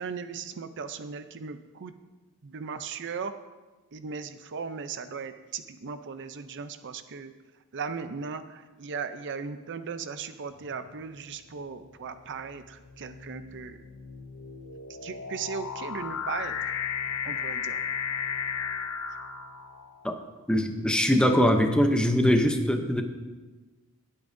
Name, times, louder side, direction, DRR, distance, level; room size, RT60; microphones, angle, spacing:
voice 1, 0.0-1.9 2.5-3.3 3.9-7.3 7.7-8.4 8.8-12.6 13.0-13.8 15.0-16.5 17.3-17.8, right 5 dB, 55° right, 10 dB, 0.5 m, -37 dB
sound 1, 10.6-11.0 11.8-20.0, left 7 dB, 65° left, 0.6 m, -35 dB
voice 2, 20.5-23.0, equal, 5° left, 5 dB, 0.7 m, -22 dB
18.5 x 8.4 x 2.6 m, 1.2 s
head